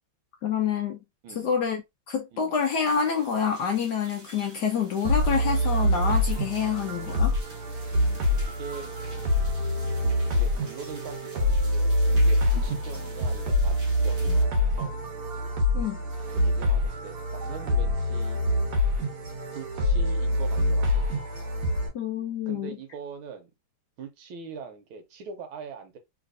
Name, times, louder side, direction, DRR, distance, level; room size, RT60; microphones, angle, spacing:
voice 1, 0.4-1.0 1.4-1.8 2.1-7.3 15.7-16.0 21.9-22.7, left 7 dB, 75° left, 0.9 m, -27 dB
voice 2, 1.2-1.6 2.3-2.5 4.6-4.7 8.0-8.9 10.3-15.0 16.3-18.4 19.5-21.1 22.5-23.5 24.0-26.0, right 6 dB, 75° right, 1.5 m, -42 dB
sound 1, 2.5-14.4, right 2 dB, 40° right, 1.0 m, -49 dB
sound 2, 5.0-21.9, left 1 dB, 55° right, 1.4 m, -25 dB
3.3 x 3.1 x 2.5 m
omnidirectional pair, 2.4 m